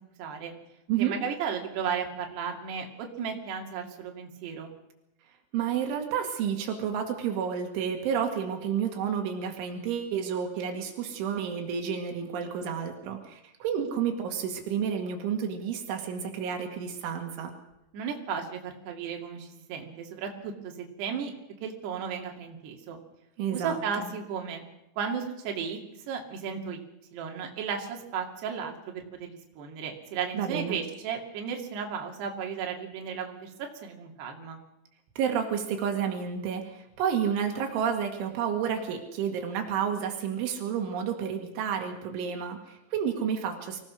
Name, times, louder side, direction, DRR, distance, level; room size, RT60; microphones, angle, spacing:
voice 1, 0.2-0.5 1.0-4.7 17.9-21.3 21.6-23.0 23.5-24.6 25.0-25.8 26.1-26.8 27.1-34.6, right 6 dB, 65° right, 2 dB, 4.5 m, -34 dB
voice 2, 5.5-17.5 23.4-24.1 30.3-30.8 35.2-43.8, right 7 dB, 85° right, 3 dB, 4.5 m, -30 dB
24.5 x 17.5 x 6.4 m, 0.91 s
omnidirectional pair, 5.4 m